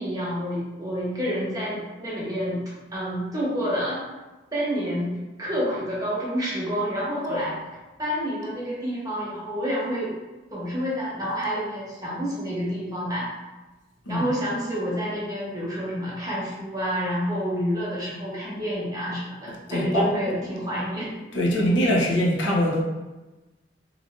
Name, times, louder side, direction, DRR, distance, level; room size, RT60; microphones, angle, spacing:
voice 1, 0.0-2.6 2.9-4.0 4.5-7.6 8.0-10.1 10.5-13.3 14.1-21.1, equal, 20° right, -7 dB, 0.8 m, -28 dB
voice 2, 19.7-20.1 21.3-22.8, equal, 75° left, -3 dB, 0.6 m, -22 dB
3.2 x 2.5 x 2.4 m, 1.1 s
head